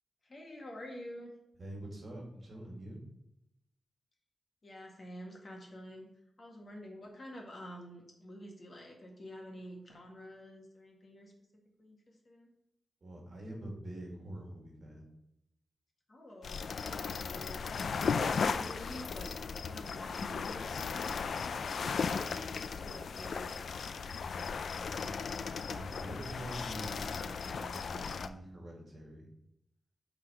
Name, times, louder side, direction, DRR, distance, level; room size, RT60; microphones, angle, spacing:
voice 1, 0.2-1.3 4.6-6.1 6.4-11.3 11.8-12.5 16.1-22.1 22.6-23.6 24.8-25.2, equal, 35° left, 0 dB, 1.9 m, -49 dB
voice 2, 1.6-3.0 13.0-15.1 24.6-25.1 25.6-29.3, right 1 dB, 40° right, -1 dB, 2.3 m, -45 dB
sound 1, 16.4-28.3, left 5 dB, 70° left, 0.4 m, -36 dB
8.7 x 4.1 x 5.5 m, 0.83 s
wide cardioid pair, 165°, 0 cm